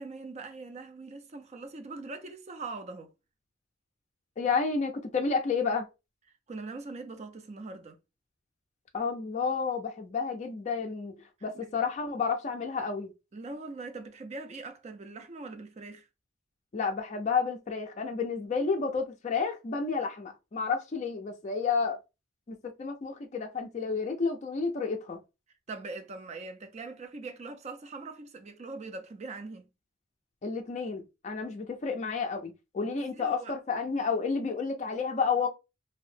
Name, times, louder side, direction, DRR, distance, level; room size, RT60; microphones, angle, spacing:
voice 1, 0.0-3.1 6.5-8.0 11.5-11.7 13.3-16.1 25.7-29.7 32.8-33.6, right 3 dB, 30° right, 0.4 m, -42 dB
voice 2, 4.4-5.9 8.9-11.1 11.4-13.1 16.7-22.0 22.5-25.2 30.4-35.5, left 5 dB, 35° left, 0.4 m, -31 dB
2.7 x 2.0 x 3.1 m
head